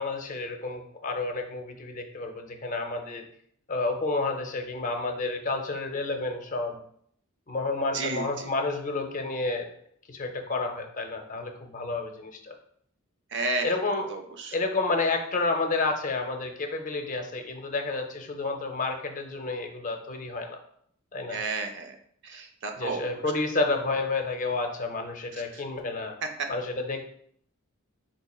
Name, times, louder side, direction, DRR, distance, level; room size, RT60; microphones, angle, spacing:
voice 1, 0.0-3.2 3.7-6.8 7.5-9.7 10.1-12.5 13.6-14.1 14.5-20.6 21.1-21.4 22.7-26.2 26.5-27.1, left 3 dB, 35° left, 4 dB, 0.6 m, -30 dB
voice 2, 7.9-8.5 13.3-13.7 14.1-14.5 21.3-21.9 22.2-23.0, right 3 dB, 55° right, 5 dB, 0.5 m, -32 dB
4.6 x 4.2 x 2.3 m, 0.65 s
head